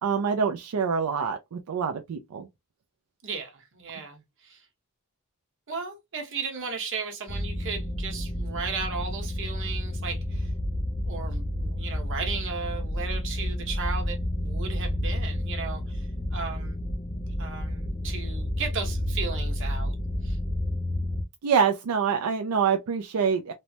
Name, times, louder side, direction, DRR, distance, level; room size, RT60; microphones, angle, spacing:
voice 1, 0.0-2.5 21.4-23.5, right 6 dB, 80° right, 0.4 m, -25 dB
voice 2, 3.2-4.7 5.7-10.5 11.0-16.8 17.4-19.9 20.2-20.4, right 5 dB, 60° right, 1.0 m, -35 dB
sound 1, 7.3-21.2, left 1 dB, 25° left, 0.5 m, -30 dB
3.1 x 2.0 x 2.6 m
head